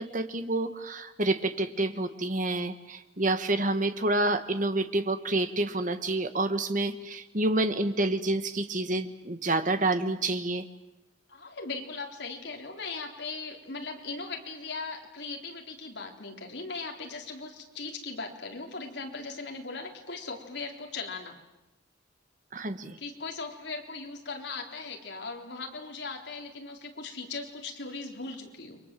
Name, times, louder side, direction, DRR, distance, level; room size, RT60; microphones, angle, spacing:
voice 1, 0.0-10.6 22.5-23.0, right 2 dB, 40° right, 9 dB, 1.6 m, -28 dB
voice 2, 11.3-21.4 23.0-28.8, left 4 dB, 65° left, 2 dB, 3.7 m, -39 dB
30.0 x 23.5 x 7.7 m, 0.95 s
head